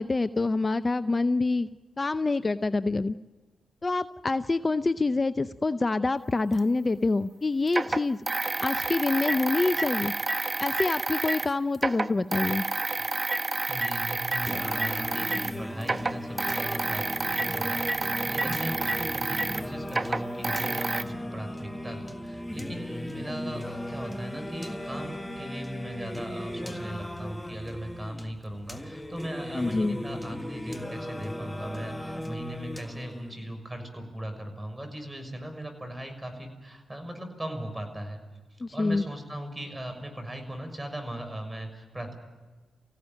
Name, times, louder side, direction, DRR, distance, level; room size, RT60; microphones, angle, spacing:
voice 1, 0.0-1.7 2.0-3.2 3.8-8.2 8.6-10.1 10.6-12.6 29.5-30.0 38.6-39.0, left 3 dB, 35° left, 13 dB, 0.7 m, -26 dB
sound 1, 6.6-6.7 7.7-11.5 11.7-15.6 15.8-21.0, right 3 dB, 35° right, 1.1 m, -29 dB
voice 2, 13.3-38.2 38.5-42.2, right 1 dB, 20° right, 5 dB, 6.4 m, -39 dB
Singing, 14.5-33.5, left 1 dB, 10° left, 1.7 m, -37 dB
24.5 x 16.0 x 9.1 m, 1.3 s
supercardioid pair, 45°, 0 cm